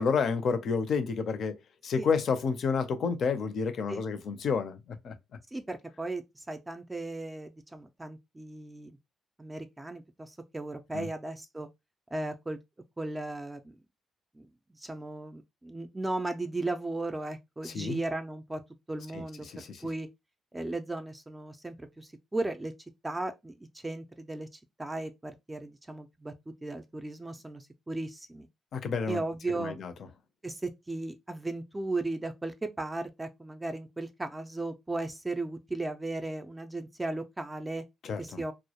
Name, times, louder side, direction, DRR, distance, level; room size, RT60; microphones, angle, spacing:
voice 1, 0.0-1.5 1.8-5.1 10.9-11.1 17.6-18.0 19.1-19.9 28.7-29.2 29.5-29.9 38.0-38.4, left 5 dB, 60° left, 0.5 m, -30 dB
voice 2, 5.5-8.9 9.4-11.7 12.1-12.6 13.0-13.8 14.4-14.5 14.7-18.6 18.9-20.1 20.5-22.7 23.0-23.5 23.8-24.5 24.8-26.3 26.6-28.5 29.1-29.8 30.4-37.8 38.2-38.5, right 2 dB, 15° right, 0.4 m, -36 dB
2.2 x 2.0 x 2.8 m
cardioid pair, 90°, 0 cm